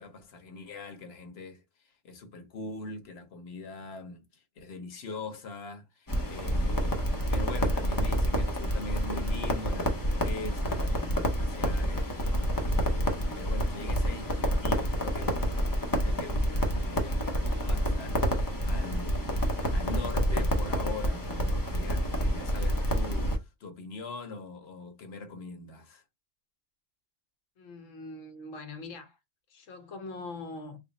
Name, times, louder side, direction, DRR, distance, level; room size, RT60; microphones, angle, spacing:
voice 1, 0.0-1.6 2.0-15.6 16.0-26.0, left 3 dB, 55° left, 1.1 m, -42 dB
Crackle, 6.1-23.4, equal, 20° left, 0.6 m, -28 dB
voice 2, 27.6-29.2 29.5-30.8, left 3 dB, 80° left, 1.3 m, -42 dB
3.4 x 2.2 x 3.9 m
omnidirectional pair, 1.3 m